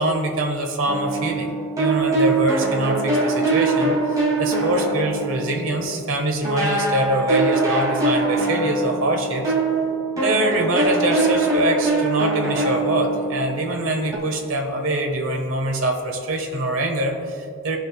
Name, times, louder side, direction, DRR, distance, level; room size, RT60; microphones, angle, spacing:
voice 1, 0.0-1.5 1.8-9.5 10.2-17.8, right 1 dB, 65° right, 2 dB, 1.4 m, -24 dB
sound 1, 0.9-6.1 6.4-14.2, right 3 dB, 15° right, 2.4 m, -23 dB
17.5 x 6.3 x 2.3 m, 2.3 s
head